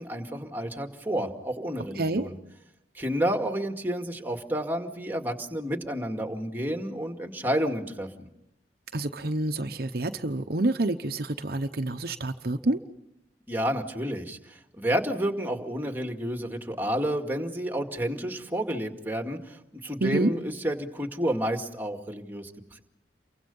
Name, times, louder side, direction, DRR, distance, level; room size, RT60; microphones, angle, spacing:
voice 1, 0.0-2.4 2.9-8.3 13.5-22.8, equal, 10° right, 4 dB, 2.2 m, -30 dB
voice 2, 8.9-12.8 20.0-20.3, right 2 dB, 60° right, 7 dB, 1.0 m, -28 dB
29.0 x 24.0 x 5.5 m, 0.82 s
head